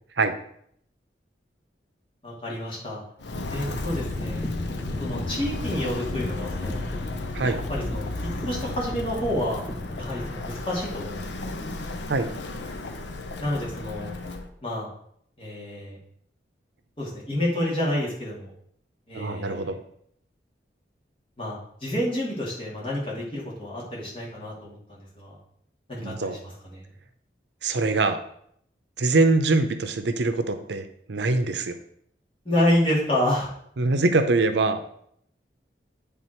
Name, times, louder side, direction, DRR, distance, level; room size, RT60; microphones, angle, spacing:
voice 1, 2.2-3.0 3.5-4.4 5.0-6.9 7.4-9.6 10.0-11.5 13.4-14.1 14.6-14.9 15.4-16.0 17.0-18.5 19.1-19.8 21.4-25.4 25.9-26.8 32.4-33.5, left 1 dB, 30° left, -5 dB, 2.3 m, -29 dB
Walk footsteps, 3.2-14.5, left 2 dB, 80° left, 0.7 m, -33 dB
sound 1, 3.6-10.3, left 1 dB, 10° left, 0.5 m, -37 dB
voice 2, 19.1-19.8 26.0-26.4 27.6-28.2 29.0-31.8 33.8-34.8, right 3 dB, 80° right, 9 dB, 0.6 m, -23 dB
9.1 x 3.6 x 4.4 m, 0.68 s
head